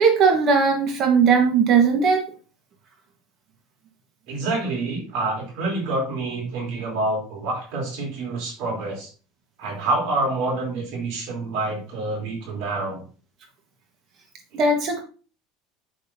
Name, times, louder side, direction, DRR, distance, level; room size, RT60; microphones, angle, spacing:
voice 1, 0.0-2.3 14.5-15.0, right 5 dB, 40° right, 3 dB, 1.5 m, -18 dB
voice 2, 4.3-9.1 9.6-13.0, right 2 dB, 65° right, -1 dB, 3.5 m, -27 dB
7.6 x 6.7 x 2.8 m, 0.37 s
supercardioid pair, 135°, 0 cm